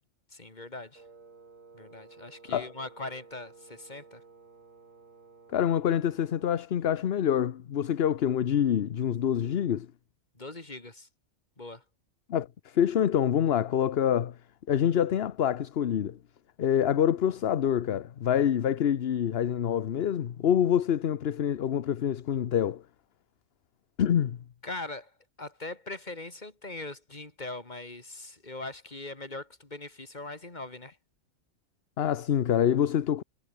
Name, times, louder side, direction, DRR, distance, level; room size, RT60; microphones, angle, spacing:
voice 1, 0.3-1.0 1.7-4.2 10.3-11.1 11.6-11.8 24.6-25.1 25.4-31.0, left 2 dB, 35° left, 3.1 m, -41 dB
Wind instrument woodwind instrument, 0.9-6.7, right 4 dB, 85° right, 2.8 m, -54 dB
voice 2, 5.5-9.9 12.3-14.3 14.7-16.2 16.6-22.8 24.0-24.4 32.0-33.2, left 9 dB, 55° left, 1.0 m, -26 dB
omnidirectional pair, 1.3 m